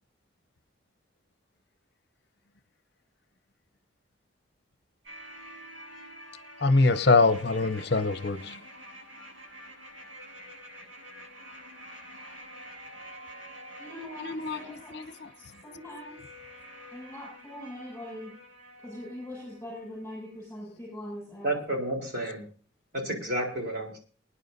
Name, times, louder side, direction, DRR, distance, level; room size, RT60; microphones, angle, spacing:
sound 1, 5.0-20.1 20.3-20.4, equal, 75° right, 8.0 m, -48 dB
voice 1, 6.6-8.5 14.2-14.6 14.9-15.3, left 3 dB, 55° left, 0.8 m, -23 dB
voice 2, 13.8-14.9 15.4-16.1 16.9-18.3 18.8-21.5, left 1 dB, 10° left, 7.6 m, -42 dB
voice 3, 21.4-22.4 22.9-24.0, right 1 dB, 55° right, 4.0 m, -31 dB
25.0 x 9.9 x 2.7 m
head